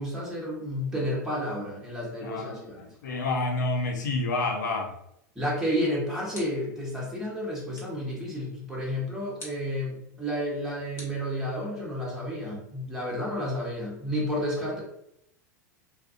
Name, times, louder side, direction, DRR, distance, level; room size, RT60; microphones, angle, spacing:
voice 1, 0.0-2.9 5.3-14.8, equal, 5° right, -5 dB, 1.0 m, -31 dB
voice 2, 2.2-4.9, left 2 dB, 80° left, 1 dB, 0.6 m, -29 dB
sound 1, 6.3-6.8 7.7-8.1 9.4-9.7 11.0-11.8, left 2 dB, 25° left, 1.0 m, -47 dB
2.4 x 2.1 x 2.5 m, 0.79 s
hypercardioid pair, 95°, 10 cm